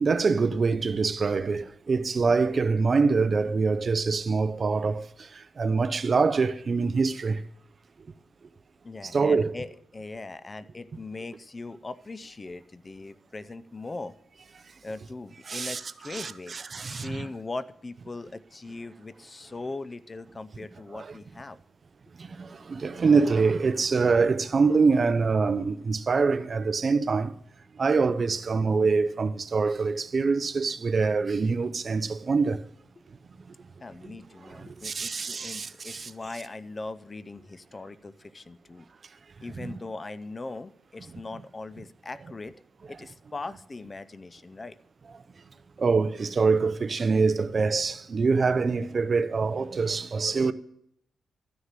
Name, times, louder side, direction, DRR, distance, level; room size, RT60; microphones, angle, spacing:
voice 1, 0.0-7.4 9.1-9.5 15.5-15.8 16.1-17.3 20.9-21.1 22.2-27.3 27.8-32.6 34.5-36.1 39.6-39.7 45.8-50.5, right 4 dB, 40° right, 0.5 m, -25 dB
voice 2, 8.8-14.1 14.8-21.6 33.8-38.9 39.4-42.5 42.9-44.8, left 3 dB, 25° left, 0.5 m, -40 dB
13.0 x 6.5 x 7.4 m
cardioid pair, 105°, 0 cm